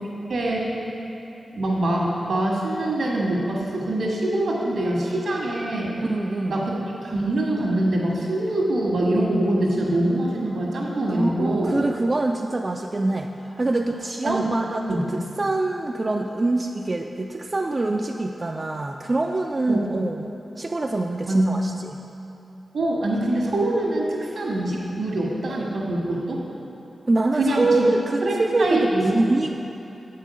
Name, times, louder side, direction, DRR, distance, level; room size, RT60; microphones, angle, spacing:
voice 1, 0.3-0.7 1.5-5.9 6.5-6.7 7.0-11.8 13.7-13.8 14.2-14.4 14.9-15.0 19.7-19.8 21.3-21.5 22.7-26.4 27.3-27.7 28.2-29.1, right 1 dB, 80° right, -3 dB, 1.6 m, -24 dB
voice 2, 6.0-6.6 11.1-15.1 15.4-22.0 27.1-29.6, right 2 dB, 40° right, 2 dB, 0.3 m, -25 dB
7.4 x 5.6 x 5.1 m, 2.9 s
cardioid pair, 50°, 0 cm